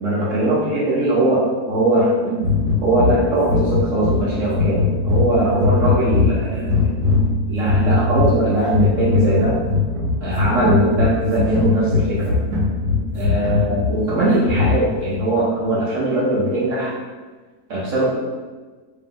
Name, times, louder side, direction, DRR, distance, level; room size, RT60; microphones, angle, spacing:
voice 1, 0.0-1.4 1.7-6.9 7.5-9.6 10.2-12.4 13.1-16.9 17.7-18.1, right 1 dB, 55° right, -7 dB, 1.1 m, -20 dB
sound 1, 2.4-15.1, left 3 dB, 75° right, 1.4 m, -21 dB
3.2 x 2.9 x 3.8 m, 1.3 s
omnidirectional pair, 1.7 m